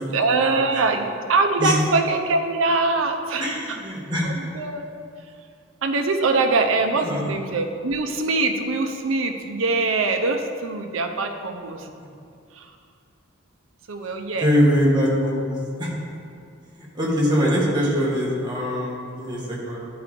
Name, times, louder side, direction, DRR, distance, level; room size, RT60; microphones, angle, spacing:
voice 1, 0.1-3.8 4.2-4.9 5.8-11.9 12.5-12.8 13.9-14.5, right 3 dB, 80° right, 6 dB, 0.7 m, -23 dB
voice 2, 3.4-4.3 6.9-7.3 14.4-15.9 16.8-19.8, equal, 20° right, -5 dB, 1.5 m, -23 dB
11.5 x 4.7 x 3.7 m, 2.4 s
head